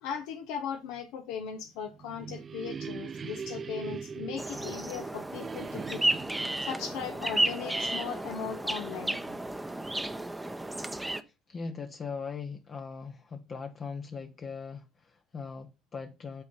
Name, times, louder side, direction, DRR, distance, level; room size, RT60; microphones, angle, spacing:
voice 1, 0.0-6.0 6.6-9.2, left 7 dB, 75° left, 0.8 m, -38 dB
sound 1, 1.6-8.3, right 6 dB, 35° right, 0.3 m, -42 dB
sound 2, 4.4-11.2, right 1 dB, 10° right, 0.7 m, -33 dB
voice 2, 11.2-16.4, left 5 dB, 35° left, 0.7 m, -40 dB
8.1 x 4.0 x 5.3 m
supercardioid pair, 85°, 0 cm